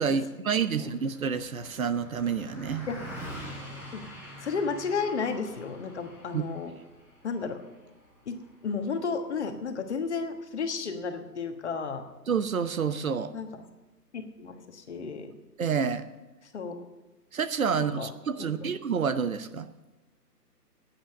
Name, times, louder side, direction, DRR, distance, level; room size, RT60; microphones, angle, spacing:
voice 1, 0.0-2.9 6.3-6.4 12.3-13.3 15.6-16.1 17.3-19.7, right 6 dB, 55° right, 13 dB, 0.9 m, -28 dB
Car passing by, 0.7-10.3, equal, 5° right, 2.8 m, -45 dB
voice 2, 4.4-6.7 7.2-7.6 8.3-8.4 8.6-12.0 13.3-13.5 14.1-15.3 16.5-16.7 17.7-18.1 18.4-18.7, left 5 dB, 45° left, 6 dB, 1.4 m, -33 dB
11.0 x 8.9 x 7.7 m, 1.1 s
figure-of-eight pair, 150°, 48 cm